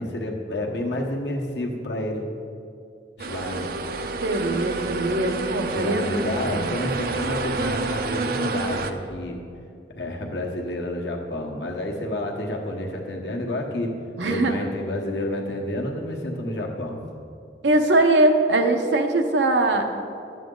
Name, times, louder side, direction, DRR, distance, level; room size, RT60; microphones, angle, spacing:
voice 1, 0.0-2.3 3.2-3.7 5.7-9.4 9.9-13.9 14.2-17.0, left 1 dB, 75° left, 0 dB, 1.3 m, -29 dB
sound 1, 3.2-8.9, right 3 dB, 55° right, 0.5 m, -29 dB
voice 2, 4.2-6.2 6.5-6.7 14.2-14.6 17.6-19.8, right 2 dB, 90° right, 4 dB, 0.9 m, -21 dB
11.5 x 7.6 x 3.8 m, 2.5 s
head